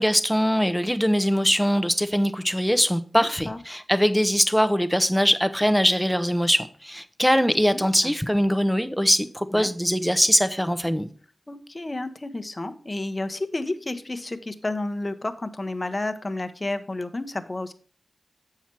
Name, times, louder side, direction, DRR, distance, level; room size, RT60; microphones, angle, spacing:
voice 1, 0.0-11.1, equal, ahead, 0.7 m, -22 dB
voice 2, 3.1-3.6 7.7-8.1 9.5-9.7 11.5-17.7, left 2 dB, 30° left, 0.8 m, -31 dB
7.2 x 5.8 x 4.5 m
cardioid pair, 55°, 0 cm